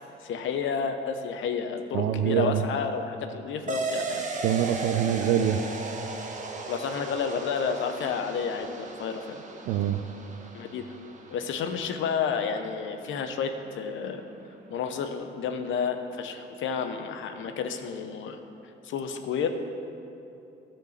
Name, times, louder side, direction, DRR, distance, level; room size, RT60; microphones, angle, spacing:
voice 1, 0.2-4.2 6.7-9.4 10.5-10.9 11.3-14.2 14.7-18.4 18.8-19.5, left 6 dB, 80° left, 6 dB, 0.8 m, -31 dB
voice 2, 1.9-2.6 4.4-5.6 9.7-10.0, right 10 dB, 85° right, 8 dB, 0.4 m, -24 dB
sound 1, 3.7-12.7, right 3 dB, 40° right, 1.0 m, -37 dB
13.5 x 4.5 x 6.6 m, 2.8 s
cardioid pair, 90°, 20 cm